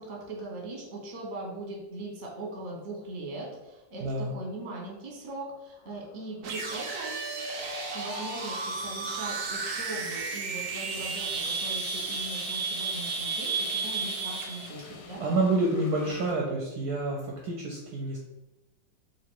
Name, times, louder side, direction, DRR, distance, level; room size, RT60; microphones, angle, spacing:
voice 1, 0.0-7.2 7.9-15.2, right 2 dB, 35° right, -3 dB, 0.9 m, -40 dB
voice 2, 4.0-4.3 14.8-18.2, right 2 dB, 70° right, -1 dB, 1.0 m, -28 dB
sound 1, 5.8-16.3, left 4 dB, 70° left, 1.1 m, -47 dB
sound 2, 6.4-14.7, right 4 dB, 85° right, 0.7 m, -33 dB
2.9 x 2.9 x 4.5 m, 0.99 s
omnidirectional pair, 2.0 m